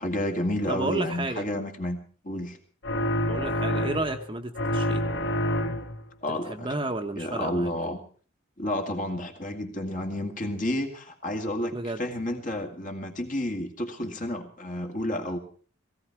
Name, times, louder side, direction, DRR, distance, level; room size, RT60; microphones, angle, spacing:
voice 1, 0.0-2.0 2.2-2.6 6.2-6.7 7.1-8.0 8.6-15.4, left 1 dB, 40° left, 4 dB, 2.1 m, -30 dB
voice 2, 0.7-1.5 3.3-5.0 6.3-7.7 11.7-12.0, right 2 dB, 25° right, 5 dB, 1.1 m, -31 dB
sound 1, 2.8-4.3 4.6-6.1, left 1 dB, 60° left, 1.1 m, -27 dB
17.5 x 16.5 x 4.7 m, 0.42 s
head